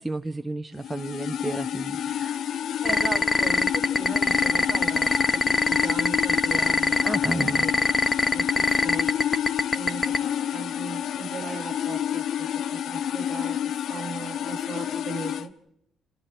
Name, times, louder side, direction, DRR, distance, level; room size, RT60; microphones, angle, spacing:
voice 1, 0.0-2.5 7.0-7.7, right 2 dB, 10° right, 7 dB, 1.1 m, -32 dB
sound 1, 0.8-15.5, left 9 dB, 70° left, 1.1 m, -29 dB
voice 2, 2.8-5.1 5.6-7.7 8.3-9.1 9.7-10.0 10.4-15.5, right 5 dB, 35° right, 4 dB, 6.6 m, -38 dB
sound 2, 2.9-10.2, left 3 dB, 20° left, 1.1 m, -21 dB
29.0 x 27.0 x 4.6 m, 0.79 s
cardioid pair, 90°, 0 cm